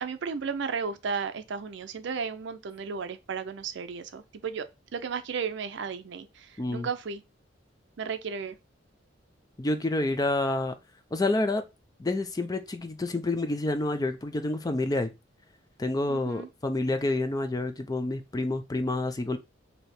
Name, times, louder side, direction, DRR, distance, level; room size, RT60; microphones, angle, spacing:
voice 1, 0.0-4.7 4.9-7.2 8.0-8.6 16.1-16.5, right 5 dB, 65° right, 0.5 m, -34 dB
voice 2, 6.6-6.9 9.6-10.7 11.1-11.6 12.0-15.1 15.8-19.4, left 2 dB, 20° left, 0.4 m, -28 dB
3.3 x 2.8 x 4.2 m
head